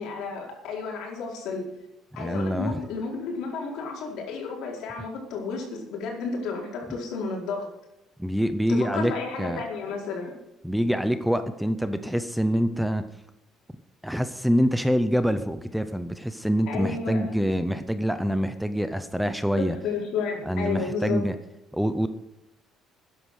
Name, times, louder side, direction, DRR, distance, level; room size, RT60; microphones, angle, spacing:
voice 1, 0.0-1.6 2.1-7.7 8.7-10.4 16.7-17.4 19.6-21.3, left 4 dB, 70° left, 0 dB, 4.6 m, -32 dB
voice 2, 2.2-2.8 8.2-9.1 9.4-9.6 10.6-13.0 14.0-19.8 20.5-21.3 21.7-22.1, equal, ahead, 10 dB, 0.6 m, -25 dB
13.0 x 10.5 x 6.3 m, 0.90 s
cardioid pair, 175°, 0 cm